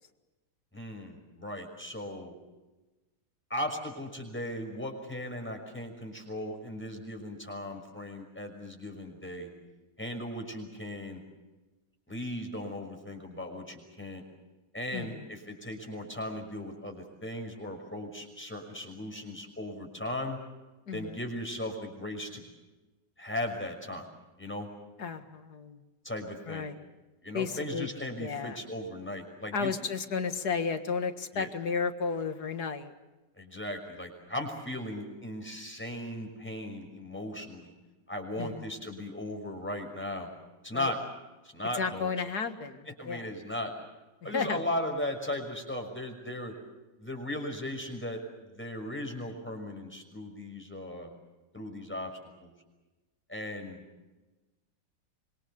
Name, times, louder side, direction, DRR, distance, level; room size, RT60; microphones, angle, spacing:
voice 1, 0.7-2.3 3.5-9.5 10.0-11.2 12.1-14.2 14.7-20.4 20.9-22.4 23.2-24.1 24.4-24.7 26.0-26.7 27.2-29.7 31.3-31.5 33.4-37.7 38.1-40.3 40.6-41.0 41.4-42.2 42.9-43.7 44.2-46.5 47.0-48.2 48.5-51.1 51.5-52.5 53.3-53.8, left 1 dB, 5° left, 2 dB, 5.9 m, -37 dB
voice 2, 14.9-15.2 20.9-21.2 25.0-25.8 26.5-26.8 27.3-27.9 28.2-28.6 29.5-32.9 38.4-38.7 40.7-40.9 41.7-43.3 44.2-44.6, left 5 dB, 65° left, 8 dB, 2.2 m, -33 dB
25.5 x 25.5 x 6.9 m, 1.1 s
omnidirectional pair, 1.9 m